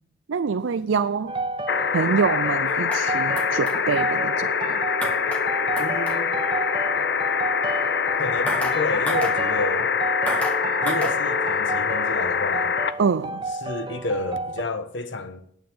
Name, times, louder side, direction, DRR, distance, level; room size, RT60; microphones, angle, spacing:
voice 1, 0.3-1.4 1.9-4.8 13.0-13.4, right 5 dB, 85° right, 0.5 m, -25 dB
sound 1, 1.3-14.6, right 2 dB, 25° right, 0.9 m, -31 dB
sound 2, 1.7-12.9 14.4-14.5, left 6 dB, 60° left, 0.7 m, -24 dB
sound 3, 2.7-3.0 3.4-3.8 5.0-5.4 5.8-6.2 8.5-8.8 9.1-9.4 10.3-10.6 10.9-11.2, equal, 5° left, 2.1 m, -29 dB
voice 2, 5.8-6.3 8.1-9.9 10.8-12.8 13.6-15.4, left 2 dB, 75° left, 1.4 m, -30 dB
9.4 x 9.0 x 8.6 m
head